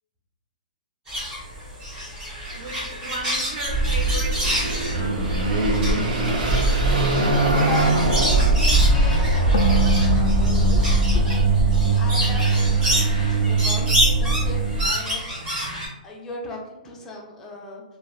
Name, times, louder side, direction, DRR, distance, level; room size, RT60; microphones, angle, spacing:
sound 1, 1.1-15.9, equal, 15° right, 0.8 m, -29 dB
voice 1, 2.5-4.6 4.9-7.2, right 3 dB, 50° right, -2 dB, 0.9 m, -36 dB
Car passing by / Accelerating revving vroom, 3.7-14.9, right 2 dB, 75° right, 0.9 m, -20 dB
voice 2, 7.6-15.4 16.0-17.8, left 2 dB, 10° left, -3 dB, 0.4 m, -37 dB
sound 2, 9.5-13.0, right 3 dB, 70° left, 0.4 m, -28 dB
3.2 x 2.1 x 2.3 m, 0.92 s
hypercardioid pair, 160°, 5 cm